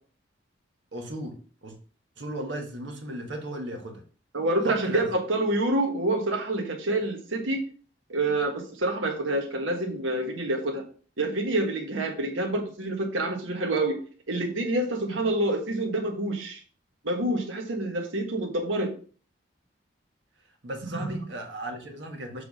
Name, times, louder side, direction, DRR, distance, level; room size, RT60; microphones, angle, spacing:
voice 1, 0.9-1.7 2.2-4.0 4.6-5.1 20.6-22.4, right 1 dB, 70° right, 3 dB, 1.5 m, -36 dB
voice 2, 4.3-7.6 8.1-10.8 11.2-14.0 14.3-16.6 17.0-18.9 20.9-21.1, right 1 dB, 90° right, 2 dB, 1.4 m, -27 dB
6.9 x 3.5 x 5.4 m, 0.41 s
head